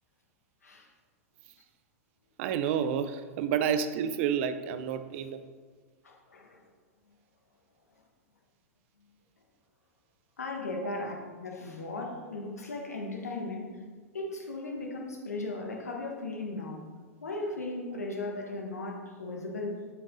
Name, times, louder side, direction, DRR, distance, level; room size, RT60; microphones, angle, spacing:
voice 1, 2.4-5.4 10.8-11.0, right 8 dB, 55° right, 11 dB, 0.6 m, -30 dB
voice 2, 6.0-6.6 10.4-13.8 14.1-16.9 17.2-19.8, left 2 dB, 85° left, 1 dB, 1.5 m, -37 dB
8.2 x 5.9 x 3.9 m, 1.5 s
hypercardioid pair, 100°, 8 cm